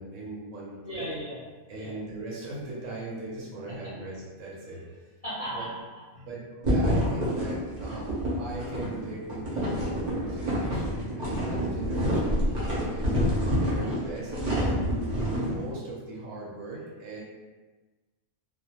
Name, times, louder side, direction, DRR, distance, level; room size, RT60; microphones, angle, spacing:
voice 1, 0.0-1.1 1.7-4.9 5.5-5.7 6.1-13.2 13.6-14.3 14.7-17.2, right 2 dB, 70° right, -5 dB, 0.9 m, -39 dB
voice 2, 0.8-1.4 1.7-1.9 3.7-3.8 5.2-5.7 13.2-13.5, equal, 45° left, -11 dB, 0.4 m, -36 dB
sound 1, 6.6-15.6, equal, 45° right, 0.6 m, -28 dB
2.4 x 2.0 x 2.7 m, 1.2 s
omnidirectional pair, 1.5 m